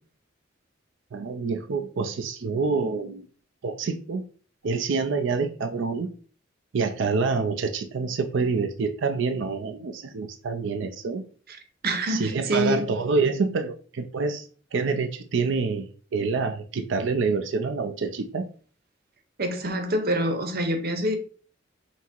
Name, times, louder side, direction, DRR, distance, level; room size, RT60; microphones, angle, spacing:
voice 1, 1.1-3.2 3.6-4.2 4.6-6.1 6.7-11.2 12.1-18.5, right 4 dB, 70° right, 0.5 m, -27 dB
voice 2, 11.8-12.9 19.4-21.2, right 1 dB, 55° right, 0.9 m, -26 dB
5.9 x 2.0 x 4.4 m
head